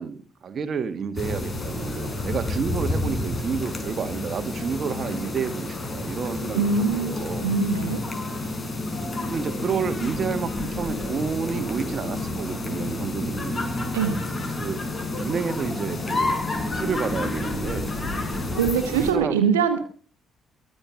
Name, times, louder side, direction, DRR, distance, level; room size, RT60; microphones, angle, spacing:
voice 1, 0.0-7.5 9.3-13.7 14.6-14.8 15.2-16.4 16.7-18.0 18.9-19.4, right 6 dB, 45° right, 9 dB, 1.6 m, -30 dB
sound 1, 1.2-19.1, left 2 dB, 30° left, 5.4 m, -29 dB
voice 2, 6.5-7.1 7.4-8.0 13.9-14.2 18.6-19.8, right 6 dB, 75° right, 8 dB, 1.4 m, -22 dB
23.0 x 8.0 x 7.2 m, 0.43 s
figure-of-eight pair, 45°, 0 cm